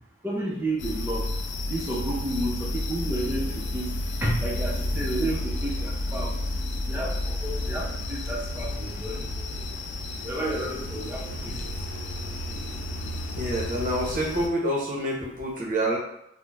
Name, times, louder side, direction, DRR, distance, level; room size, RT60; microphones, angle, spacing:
voice 1, 0.2-1.2 1.7-3.9 4.2-6.3 6.9-7.1 7.4-9.4 10.2-11.2, right 1 dB, 10° right, -4 dB, 0.5 m, -31 dB
sound 1, 0.8-14.5, left 1 dB, 80° left, 0.4 m, -31 dB
voice 2, 13.4-16.0, right 1 dB, 45° right, -3 dB, 0.7 m, -27 dB
2.4 x 2.1 x 3.2 m, 0.81 s
head